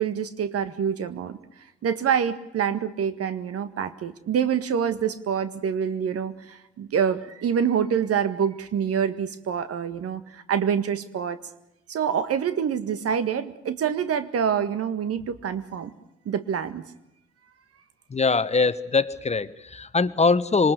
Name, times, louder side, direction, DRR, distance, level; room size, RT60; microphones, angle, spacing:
voice 1, 0.0-1.4 1.8-11.4 11.9-15.9 16.3-16.8, right 8 dB, 45° right, 12 dB, 1.7 m, -26 dB
voice 2, 18.1-20.7, left 4 dB, 20° left, 14 dB, 1.3 m, -22 dB
26.5 x 24.5 x 6.8 m, 0.86 s
figure-of-eight pair, 45°, 33 cm